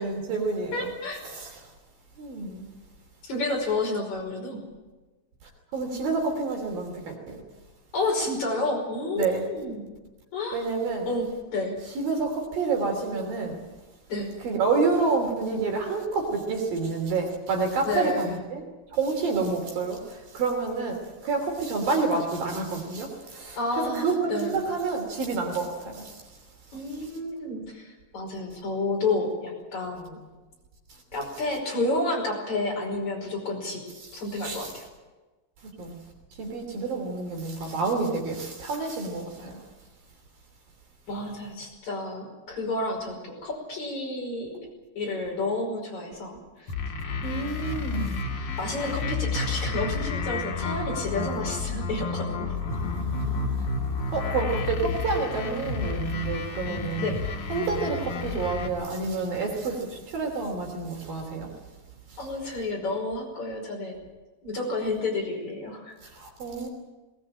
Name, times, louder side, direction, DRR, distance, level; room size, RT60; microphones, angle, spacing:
voice 1, 0.0-0.9 1.2-1.6 2.2-2.7 5.7-7.4 9.2-9.5 10.5-11.1 11.9-13.6 14.4-18.6 18.9-26.2 34.0-34.1 34.4-34.7 35.6-35.9 36.4-39.6 47.2-48.2 52.7-53.7 54.1-57.1 57.5-61.5 62.1-62.2 66.0-66.7, right 4 dB, 55° right, 2 dB, 4.7 m, -29 dB
voice 2, 0.7-1.2 3.2-4.6 7.9-9.9 10.3-10.7 11.1-11.8 14.1-14.3 17.8-18.4 23.5-24.6 26.7-30.2 31.1-33.8 34.1-34.9 41.1-44.6 45.0-46.7 48.6-52.6 57.0-57.2 62.2-64.0 64.4-65.9, left 2 dB, 40° left, 0 dB, 6.4 m, -30 dB
sound 1, 46.7-58.7, left 4 dB, 55° left, 3.7 m, -30 dB
20.5 x 20.0 x 8.9 m, 1.2 s
omnidirectional pair, 5.2 m